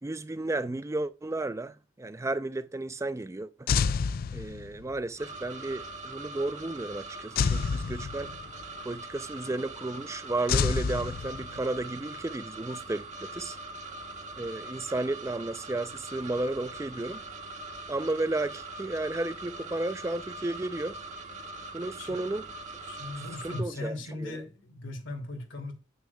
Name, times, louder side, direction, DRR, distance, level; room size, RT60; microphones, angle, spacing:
voice 1, 0.0-3.7 4.3-8.3 8.8-13.6 14.4-17.2 17.9-21.0 21.7-22.4 23.4-24.4, right 2 dB, 15° right, 0.4 m, -33 dB
sound 1, 3.7-4.9 7.4-8.6 10.5-11.8, left 5 dB, 50° left, 0.3 m, -28 dB
sound 2, 5.2-23.6, right 2 dB, 40° right, 1.2 m, -42 dB
voice 2, 22.8-25.7, left 1 dB, 80° left, 2.5 m, -38 dB
9.4 x 8.2 x 2.2 m
head